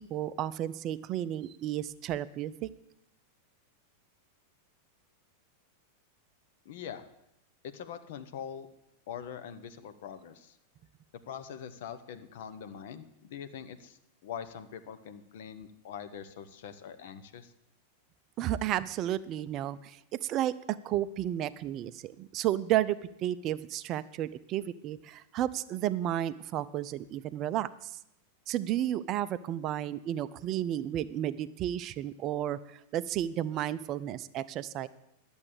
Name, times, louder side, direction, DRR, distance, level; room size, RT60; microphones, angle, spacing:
voice 1, 0.0-2.7 18.4-28.0 28.5-34.9, right 12 dB, 35° right, 15 dB, 0.4 m, -32 dB
voice 2, 6.6-7.1 7.7-8.7 9.1-10.6 11.3-17.5, left 8 dB, 55° left, 10 dB, 0.9 m, -43 dB
11.0 x 7.0 x 8.1 m, 0.83 s
figure-of-eight pair, 90°, 0 cm